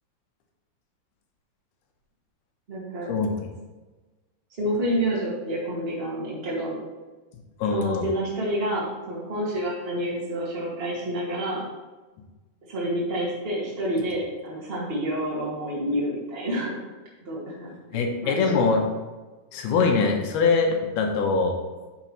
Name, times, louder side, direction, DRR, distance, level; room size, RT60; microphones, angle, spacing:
voice 1, 2.7-3.1 4.6-6.8 7.6-11.6 12.6-16.8 17.2-18.6, right 1 dB, 45° right, -7 dB, 0.7 m, -29 dB
voice 2, 7.6-8.1 17.9-18.8 19.5-21.6, left 4 dB, 75° left, 2 dB, 2.8 m, -23 dB
9.6 x 6.8 x 3.1 m, 1.2 s
omnidirectional pair, 4.8 m